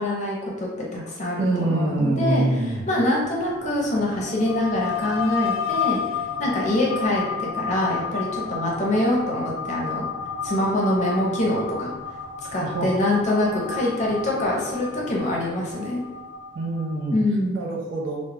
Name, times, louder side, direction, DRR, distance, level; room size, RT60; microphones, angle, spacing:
voice 1, 0.0-2.4 2.9-7.2 7.5-10.0 10.4-11.9 12.5-16.0 17.1-17.6, left 1 dB, 35° left, -3 dB, 0.5 m, -24 dB
voice 2, 1.4-2.8 12.6-12.9 16.5-17.2 17.5-18.2, right 2 dB, 70° right, -2 dB, 0.6 m, -25 dB
sound 1, 3.2-17.1, left 6 dB, 90° left, 0.3 m, -31 dB
2.2 x 2.0 x 3.3 m, 1.2 s
head